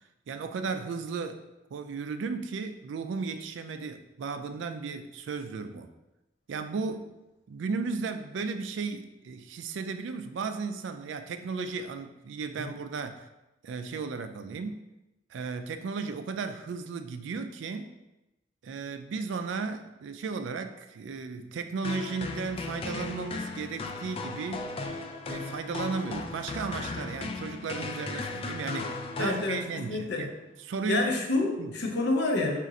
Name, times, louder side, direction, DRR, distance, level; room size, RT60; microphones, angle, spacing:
voice 1, 0.3-1.4 1.7-5.9 6.5-7.2 7.5-13.3 13.6-14.8 15.3-17.9 18.6-24.7 25.3-30.3 30.7-31.2 31.6-31.7, right 4 dB, 70° right, 9 dB, 0.3 m, -35 dB
sound 1, 21.8-30.0, left 3 dB, 30° left, 0.3 m, -36 dB
voice 2, 29.2-30.3 30.9-32.6, left 2 dB, 65° left, 2 dB, 0.6 m, -28 dB
3.7 x 2.5 x 4.1 m, 0.96 s
head